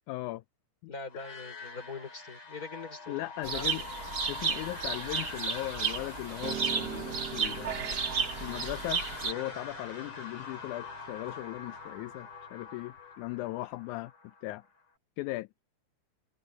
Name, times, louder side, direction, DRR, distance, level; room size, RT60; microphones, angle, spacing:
voice 1, 0.1-0.4 0.8-0.9 3.1-3.8 4.3-8.0 8.4-14.1 14.4-14.6 15.2-15.5, left 18 dB, 80° left, 1.9 m, -38 dB
voice 2, 0.9-3.2 3.5-3.7, left 4 dB, 25° left, 4.7 m, -42 dB
sound 1, 1.1-14.8, left 4 dB, 50° left, 5.9 m, -44 dB
sound 2, 3.4-9.3, right 6 dB, 40° right, 1.5 m, -33 dB
Piano, 6.4-12.6, right 8 dB, 85° right, 0.9 m, -43 dB
omnidirectional pair, 3.8 m